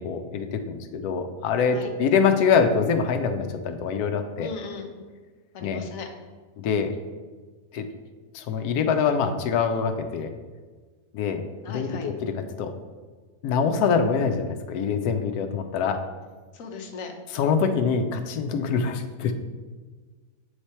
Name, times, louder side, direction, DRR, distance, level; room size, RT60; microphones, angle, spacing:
voice 1, 0.0-4.5 5.6-5.8 6.6-7.0 7.7-7.9 8.3-10.3 11.1-12.7 13.4-16.1 17.3-19.3, left 6 dB, 85° left, 7 dB, 1.1 m, -24 dB
voice 2, 4.4-4.9 5.5-6.1 11.6-12.1 16.5-17.1, left 5 dB, 65° left, 3 dB, 1.1 m, -37 dB
8.1 x 3.2 x 4.3 m, 1.4 s
omnidirectional pair, 1.6 m